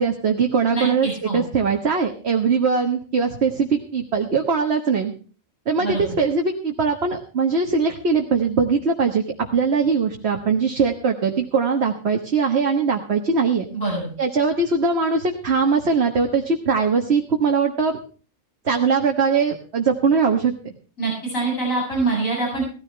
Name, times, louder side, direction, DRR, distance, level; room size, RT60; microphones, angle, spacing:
voice 1, 0.0-5.1 5.7-13.6 14.2-18.0 18.6-20.7, right 5 dB, 55° right, 2 dB, 1.6 m, -21 dB
voice 2, 0.7-1.4 5.8-6.2 13.7-14.1 21.0-22.6, right 3 dB, 85° left, -2 dB, 8.4 m, -25 dB
17.0 x 14.5 x 3.3 m, 0.39 s
omnidirectional pair, 1.4 m